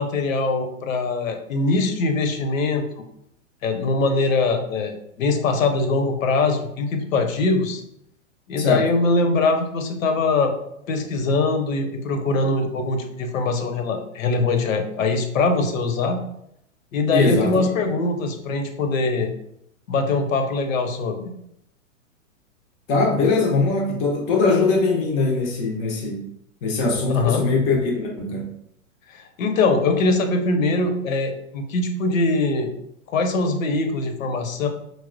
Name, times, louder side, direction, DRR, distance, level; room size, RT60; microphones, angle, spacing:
voice 1, 0.0-2.8 3.6-7.8 8.5-10.5 10.9-16.2 16.9-19.3 19.9-21.2 27.1-27.5 29.1-32.7 33.1-34.7, left 3 dB, 75° left, 6 dB, 0.7 m, -22 dB
voice 2, 17.1-17.5 22.9-26.3 26.6-28.5, left 3 dB, 20° left, 0 dB, 0.4 m, -21 dB
4.1 x 2.1 x 2.4 m, 0.77 s
hypercardioid pair, 120°, 40 cm